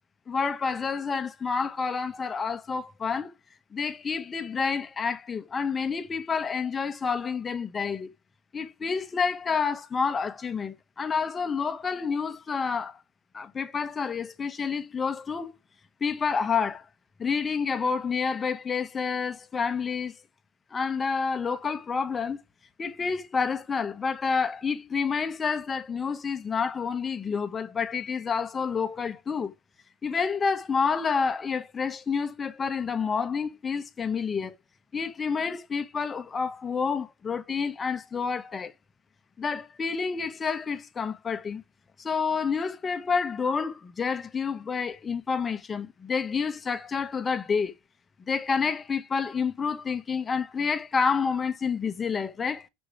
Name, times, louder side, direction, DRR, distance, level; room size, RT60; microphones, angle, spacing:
voice 1, 0.3-3.3 3.7-8.1 8.5-13.0 13.3-15.5 16.0-16.8 17.2-20.2 20.7-22.4 22.8-29.5 30.0-34.5 34.9-38.7 39.4-41.6 42.0-47.7 48.3-52.7, left 5 dB, 20° left, 1.1 m, -29 dB
6.2 x 5.4 x 5.1 m
supercardioid pair, 130°, 0 cm